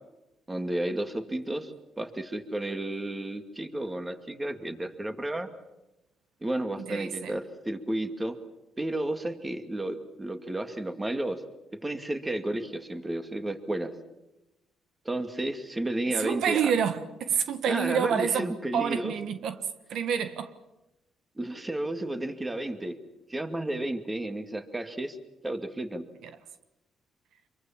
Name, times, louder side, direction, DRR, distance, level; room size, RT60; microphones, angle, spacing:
voice 1, 0.5-5.5 6.4-8.3 8.8-11.4 11.8-13.9 15.1-16.6 17.6-19.1 21.4-23.0 23.3-25.2 25.4-26.0, right 1 dB, 15° right, 2.3 m, -32 dB
voice 2, 6.8-7.4 16.1-20.5 26.2-26.3, right 7 dB, 75° right, 1.4 m, -28 dB
25.5 x 23.5 x 7.4 m
cardioid pair, 90°, 0 cm